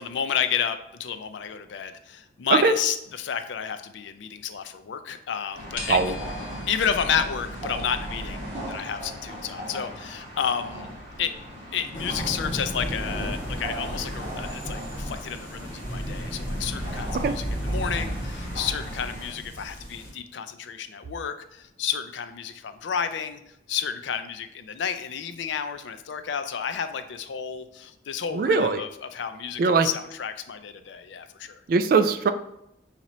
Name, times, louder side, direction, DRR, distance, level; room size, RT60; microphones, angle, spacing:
voice 1, 0.0-6.0 6.7-10.9 11.2-11.3 11.7-23.4 23.7-31.6, left 7 dB, 80° left, 10 dB, 0.4 m, -31 dB
sound 1, 5.5-19.3, equal, 35° right, 1.7 m, -38 dB
sound 2, 5.7-8.6, equal, 45° left, 0.9 m, -37 dB
sound 3, 11.9-20.1, equal, 15° left, 1.3 m, -33 dB
voice 2, 28.3-28.8 29.6-29.9 31.7-32.3, right 4 dB, 50° right, 10 dB, 0.3 m, -20 dB
5.9 x 2.8 x 3.0 m, 0.79 s
head